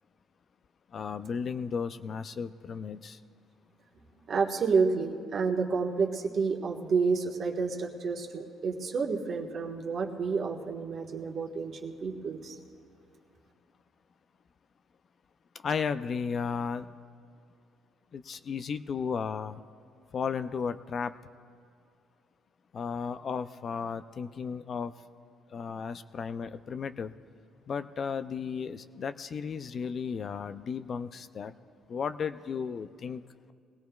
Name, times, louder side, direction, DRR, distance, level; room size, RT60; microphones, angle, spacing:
voice 1, 0.9-3.2 15.6-16.9 18.1-19.6 20.1-21.1 22.7-24.9 25.5-27.1 27.7-31.5 31.9-33.2, left 6 dB, 45° left, 11 dB, 0.4 m, -34 dB
voice 2, 4.3-12.5, right 5 dB, 50° right, 1 dB, 1.4 m, -29 dB
22.0 x 17.0 x 2.3 m, 2.3 s
cardioid pair, 100°, 0 cm